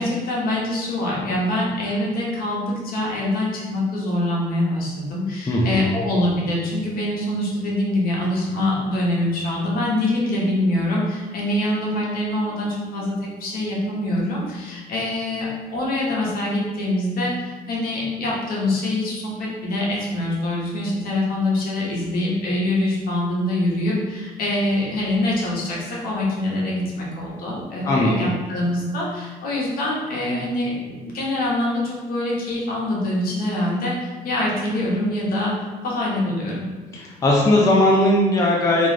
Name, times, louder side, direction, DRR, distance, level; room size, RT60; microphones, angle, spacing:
voice 1, 0.0-35.5 35.8-36.6, left 1 dB, 60° left, -4 dB, 0.9 m, -24 dB
voice 2, 5.5-5.9 27.8-28.2 36.9-38.9, left 1 dB, 20° left, -2 dB, 0.4 m, -18 dB
2.5 x 2.3 x 3.2 m, 1.3 s
cardioid pair, 110°, 17 cm